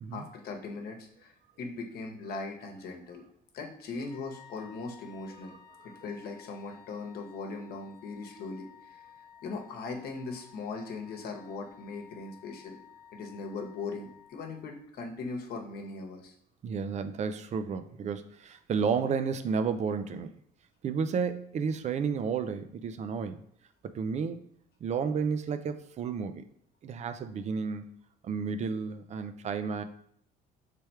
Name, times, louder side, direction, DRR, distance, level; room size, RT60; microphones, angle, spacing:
voice 1, 0.1-3.2 3.5-5.6 5.8-9.0 9.4-12.8 13.1-16.3, left 3 dB, 70° left, 3 dB, 1.0 m, -39 dB
Wind instrument woodwind instrument, 4.0-14.8, left 8 dB, 25° left, 0.9 m, -55 dB
voice 2, 16.6-20.3 20.8-23.4 23.8-24.4 24.8-26.4 26.8-28.0 28.2-29.8, right 6 dB, 45° right, 10 dB, 0.4 m, -32 dB
3.4 x 3.3 x 4.4 m, 0.70 s
cardioid pair, 110°, 17 cm